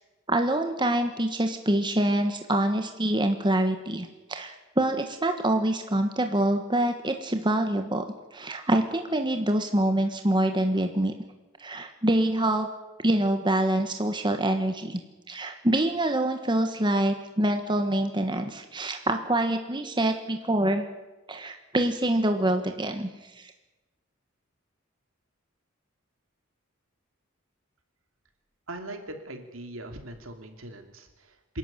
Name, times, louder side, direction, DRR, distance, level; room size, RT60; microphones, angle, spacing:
voice 1, 0.3-8.0 8.3-11.1 11.6-12.7 13.0-15.0 15.3-20.8 21.3-23.1 23.4-23.5, right 1 dB, 20° right, 6 dB, 1.4 m, -25 dB
voice 2, 28.7-31.6, right 1 dB, 70° right, 5 dB, 2.9 m, -40 dB
26.5 x 12.0 x 9.1 m, 1.1 s
head